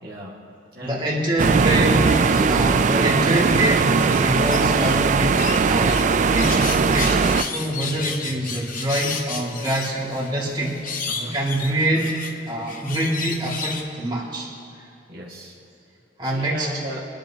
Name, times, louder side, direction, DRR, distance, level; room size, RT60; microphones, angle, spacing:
voice 1, 0.0-0.3 0.7-1.8 11.1-11.4 15.1-15.6 16.2-17.0, right 1 dB, 60° right, -4 dB, 1.8 m, -36 dB
voice 2, 0.8-2.2 2.4-6.0 6.3-10.8 11.3-12.2 12.5-14.5 16.2-16.7, right 1 dB, 25° right, -4 dB, 2.1 m, -25 dB
sound 1, 1.4-7.4, right 5 dB, 45° right, 0.4 m, -19 dB
sound 2, 2.0-2.8 3.3-5.0 5.4-13.8, left 5 dB, 50° left, 0.9 m, -33 dB
24.0 x 10.5 x 2.8 m, 2.6 s
head